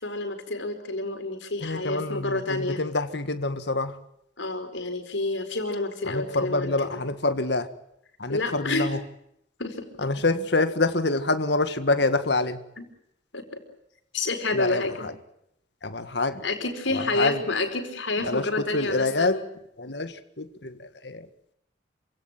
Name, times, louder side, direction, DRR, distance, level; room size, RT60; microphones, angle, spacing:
voice 1, 0.0-2.8 4.4-7.0 8.3-8.9 9.6-9.9 12.8-12.9 13.3-13.4 14.1-15.1 16.4-19.4, left 2 dB, 90° left, 4.9 m, -29 dB
voice 2, 1.6-4.0 6.1-7.7 8.2-9.0 10.0-12.6 14.5-15.1 15.8-16.4 16.9-17.4 18.3-19.4 19.8-21.3, left 2 dB, 65° left, 1.8 m, -26 dB
27.0 x 17.0 x 9.2 m
head